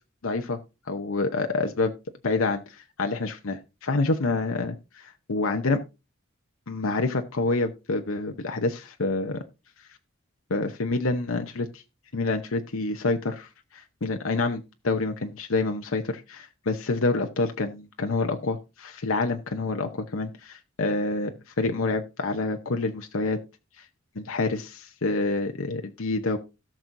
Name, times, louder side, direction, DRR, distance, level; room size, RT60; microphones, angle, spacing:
voice 1, 0.2-0.6 0.9-1.9 2.2-5.8 6.7-9.4 10.5-11.8 12.1-23.4 23.8-23.9 24.2-26.4, left 3 dB, 80° left, 5 dB, 0.9 m, -27 dB
17.5 x 6.1 x 2.6 m, 0.28 s
head